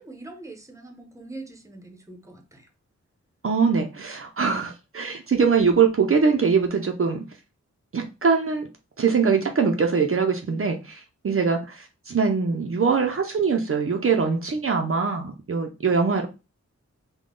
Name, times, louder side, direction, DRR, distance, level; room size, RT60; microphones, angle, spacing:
voice 1, 0.0-2.7, right 2 dB, 10° right, 0.8 m, -42 dB
voice 2, 3.4-7.2 7.9-8.7 9.0-16.3, right 5 dB, 50° right, 0.6 m, -22 dB
3.7 x 2.2 x 3.7 m
wide cardioid pair, 85°, 29 cm